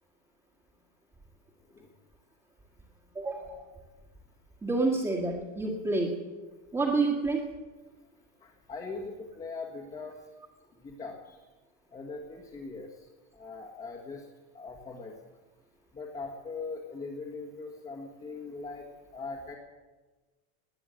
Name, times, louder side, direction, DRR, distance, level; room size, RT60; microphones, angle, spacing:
voice 1, 3.2-3.6 4.6-6.1 6.7-7.4, right 3 dB, 10° right, -3 dB, 1.8 m, -28 dB
voice 2, 8.4-10.2 10.8-11.4 11.9-13.0 13.3-14.3 14.5-15.1 15.9-19.5, left 4 dB, 15° left, -2 dB, 1.6 m, -41 dB
20.0 x 9.2 x 7.8 m, 1.2 s
supercardioid pair, 170°, 42 cm